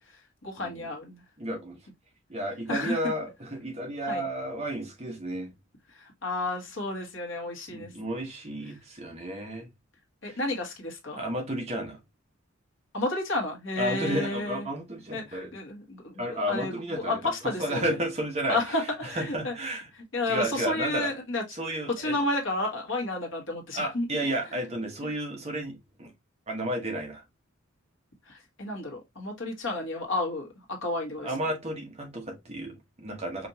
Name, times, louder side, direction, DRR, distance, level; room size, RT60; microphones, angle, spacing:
voice 1, 0.4-1.2 2.7-3.0 4.0-4.2 5.9-7.9 10.2-11.2 12.9-14.7 15.1-16.7 17.1-18.0 18.5-19.5 20.1-21.4 22.0-24.1 28.3-30.5 30.8-31.3, left 2 dB, 60° left, 1.3 m, -31 dB
voice 2, 1.4-1.8 2.3-5.5 7.7-9.7 10.3-10.4 11.1-12.0 13.8-15.5 16.2-17.2 17.6-18.6 19.1-19.9 20.3-21.1 21.6-22.2 23.7-26.1 26.5-27.2 31.2-33.5, right 1 dB, 30° right, 1.0 m, -32 dB
5.1 x 2.6 x 2.7 m
head